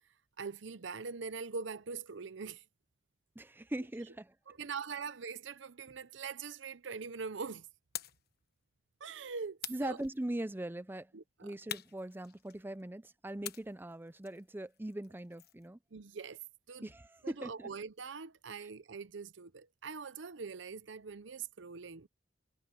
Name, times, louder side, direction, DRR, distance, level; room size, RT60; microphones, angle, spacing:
voice 1, 0.4-2.6 4.5-7.7 9.0-10.0 11.1-11.6 15.9-16.4 16.7-16.9 17.2-22.1, right 5 dB, 70° right, 0.7 m, -43 dB
voice 2, 3.4-4.3 9.7-11.1 11.4-15.8 16.8-17.7, right 1 dB, 10° right, 0.5 m, -41 dB
sound 1, 7.9-8.3 9.6-10.5 11.7-12.8 13.4-15.7, left 11 dB, 55° left, 1.2 m, -46 dB
head